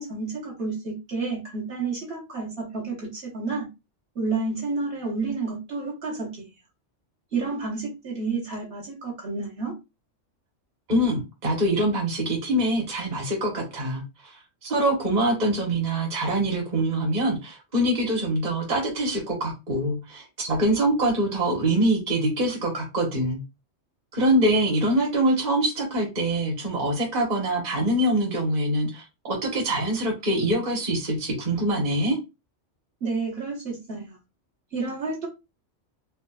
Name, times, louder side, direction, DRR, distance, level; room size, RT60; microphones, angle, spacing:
voice 1, 0.0-3.7 4.1-6.5 7.3-9.7 33.0-34.2 34.7-35.3, right 4 dB, 60° right, 1.2 m, -30 dB
voice 2, 10.9-14.0 14.6-23.4 24.1-32.2, right 1 dB, 40° right, 1.1 m, -24 dB
4.3 x 2.1 x 2.2 m
omnidirectional pair, 1.2 m